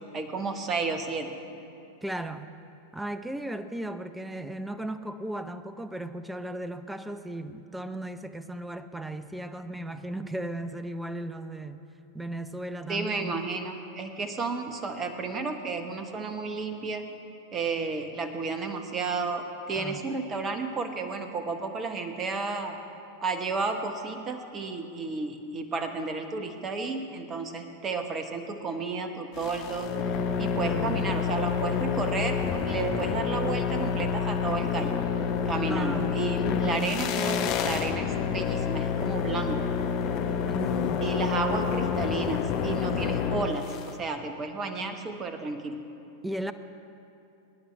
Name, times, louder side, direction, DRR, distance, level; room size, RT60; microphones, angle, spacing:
voice 1, 0.0-1.4 12.9-17.0 17.5-22.8 23.2-29.9 30.4-35.0 35.4-39.7 41.0-43.7 44.0-45.8, right 4 dB, 25° right, 7 dB, 1.3 m, -32 dB
voice 2, 2.0-2.5 2.9-11.9 12.1-13.4 19.8-20.1 30.6-31.0 35.7-36.9 40.5-41.1 46.2-46.5, right 1 dB, 5° right, 11 dB, 0.6 m, -36 dB
sound 1, 29.3-43.9, left 7 dB, 40° left, 0.9 m, -28 dB
24.5 x 10.5 x 3.4 m, 2.8 s
figure-of-eight pair, 90°, 0 cm